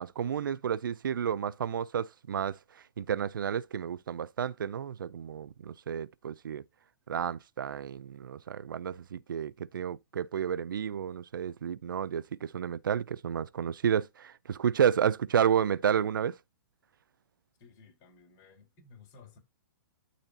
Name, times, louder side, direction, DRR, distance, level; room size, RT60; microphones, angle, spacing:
voice 1, 0.0-2.6 3.0-6.6 7.1-16.4, right 8 dB, 85° right, 0.5 m, -31 dB
voice 2, 17.6-19.4, left 5 dB, 40° left, 4.3 m, -56 dB
12.0 x 4.2 x 2.8 m
hypercardioid pair, 130°, 11 cm